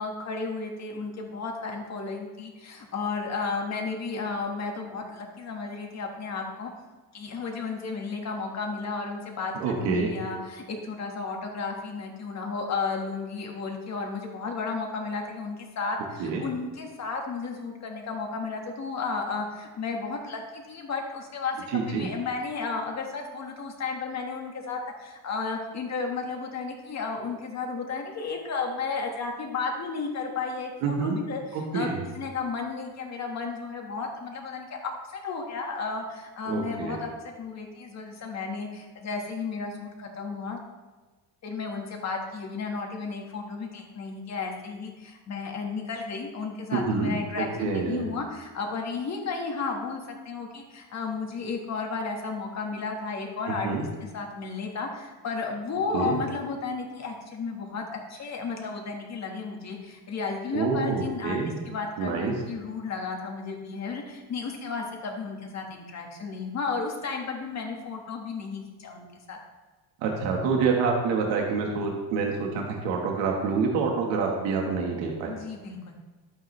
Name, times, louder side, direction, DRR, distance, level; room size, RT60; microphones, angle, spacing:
voice 1, 0.0-6.7 7.1-31.9 32.1-40.6 41.4-53.7 54.0-61.4 61.7-69.4 75.3-76.0, left 4 dB, 40° left, 1 dB, 1.7 m, -33 dB
voice 2, 9.6-10.1 16.2-16.5 21.7-22.1 30.8-31.2 31.5-32.0 36.5-37.0 46.7-48.1 53.6-53.9 55.9-56.2 60.5-61.6 62.0-62.3 70.0-75.3, right 5 dB, 90° right, 0 dB, 1.6 m, -27 dB
11.5 x 8.9 x 3.3 m, 1.3 s
cardioid pair, 140°, 43 cm